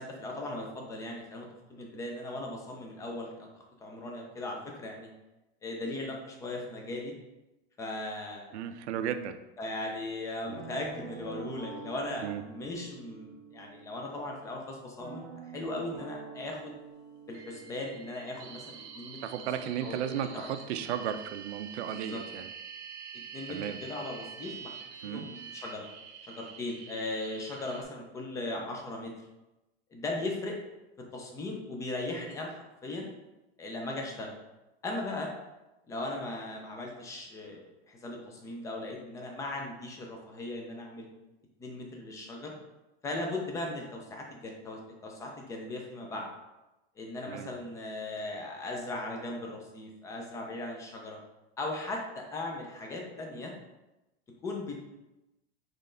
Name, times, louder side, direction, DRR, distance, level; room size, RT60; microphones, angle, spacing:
voice 1, 0.0-3.5 3.8-5.1 5.6-7.2 7.8-8.7 9.6-16.8 17.3-19.2 19.8-20.6 22.1-22.2 23.1-24.7 25.0-25.8 26.2-29.1 29.9-30.6 31.0-33.1 33.6-34.4 34.8-35.3 35.9-41.1 41.6-42.5 43.0-46.3 47.0-51.2 51.6-53.5 54.4-54.9, left 2 dB, 10° left, 1 dB, 0.3 m, -38 dB
voice 2, 8.5-9.3 10.5-10.6 12.2-12.4 19.2-22.5 23.5-23.8 25.0-25.3 47.3-47.5, right 9 dB, 90° right, 9 dB, 0.5 m, -35 dB
Guitar, 10.5-14.3 15.0-19.7, right 4 dB, 10° right, 0.9 m, -47 dB
sound 1, 17.3-27.8, right 6 dB, 35° right, 0.6 m, -46 dB
4.1 x 3.2 x 3.7 m, 1.0 s
supercardioid pair, 155°, 33 cm